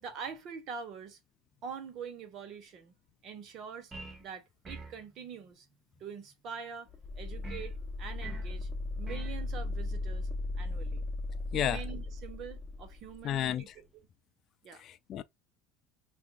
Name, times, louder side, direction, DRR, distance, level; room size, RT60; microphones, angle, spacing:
voice 1, 0.0-1.2 1.6-2.9 3.2-3.9 4.2-5.7 5.9-6.9 7.2-8.7 9.0-10.3 10.6-11.0 11.5-13.7 14.6-14.8, right 6 dB, 50° right, 1.2 m, -44 dB
hauptteil einzeln, 3.9-4.3 4.6-5.0 7.4-7.7 8.2-8.5 9.1-9.4, right 3 dB, 20° right, 1.1 m, -45 dB
sound 1, 6.9-13.5, left 2 dB, 10° left, 1.0 m, -37 dB
voice 2, 11.5-11.8 13.2-13.8 14.7-15.2, left 11 dB, 45° left, 0.4 m, -32 dB
6.0 x 2.6 x 2.4 m
supercardioid pair, 115°, 0 cm